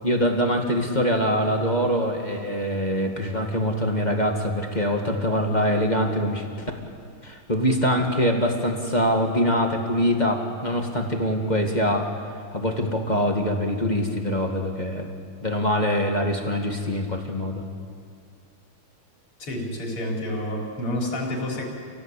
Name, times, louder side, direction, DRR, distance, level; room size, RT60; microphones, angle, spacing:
voice 1, 0.0-6.7 7.2-12.1 12.5-15.1 15.4-17.6, equal, 20° left, 2 dB, 2.1 m, -24 dB
voice 2, 19.4-21.6, left 1 dB, 80° left, -2 dB, 5.6 m, -29 dB
28.5 x 18.0 x 8.5 m, 2.2 s
omnidirectional pair, 2.4 m